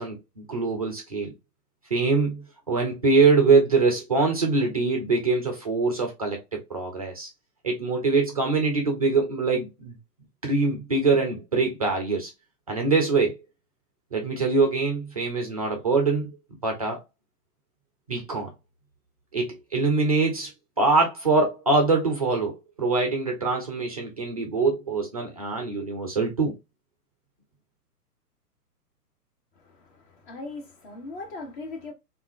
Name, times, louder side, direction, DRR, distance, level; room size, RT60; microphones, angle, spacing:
voice 1, 0.0-1.3 1.9-7.3 7.6-9.9 10.4-12.3 12.7-13.4 14.1-16.4 16.6-17.0 18.1-18.5 19.3-20.5 20.8-26.5, right 3 dB, 25° right, 0.4 m, -23 dB
voice 2, 29.5-31.9, left 3 dB, 30° left, 0.9 m, -39 dB
3.4 x 2.4 x 2.4 m
figure-of-eight pair, 115°, 48 cm